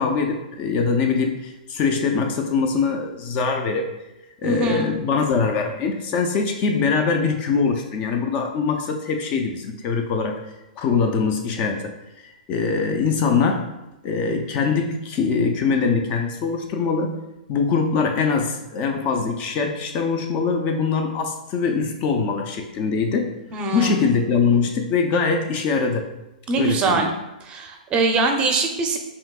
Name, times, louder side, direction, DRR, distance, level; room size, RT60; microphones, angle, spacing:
voice 1, 0.0-3.9 4.4-10.4 10.8-11.9 12.2-13.7 14.0-17.1 17.5-26.1 26.5-27.1, left 5 dB, 30° left, 4 dB, 0.4 m, -23 dB
voice 2, 4.4-4.9 23.5-24.1 26.5-27.1 27.4-29.0, right 3 dB, 20° right, 3 dB, 0.5 m, -22 dB
5.6 x 2.7 x 2.3 m, 0.94 s
hypercardioid pair, 140°, 5 cm